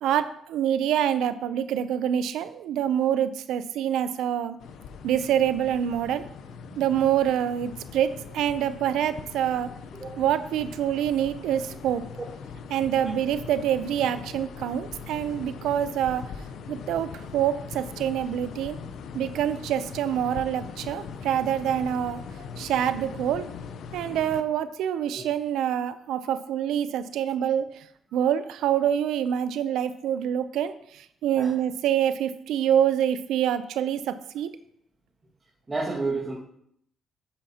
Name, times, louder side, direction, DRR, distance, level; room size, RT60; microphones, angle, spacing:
voice 1, 0.0-4.6 5.0-6.2 6.8-9.7 10.2-12.0 12.7-16.2 16.7-18.8 19.1-22.2 22.6-23.5 23.9-27.7 28.1-34.5, right 10 dB, 85° right, 12 dB, 0.5 m, -26 dB
sound 1, 4.6-24.4, left 6 dB, 75° left, 0.7 m, -41 dB
voice 2, 35.7-36.4, right 3 dB, 25° right, -5 dB, 1.9 m, -31 dB
9.0 x 8.8 x 2.9 m, 0.70 s
cardioid pair, 90°, 0 cm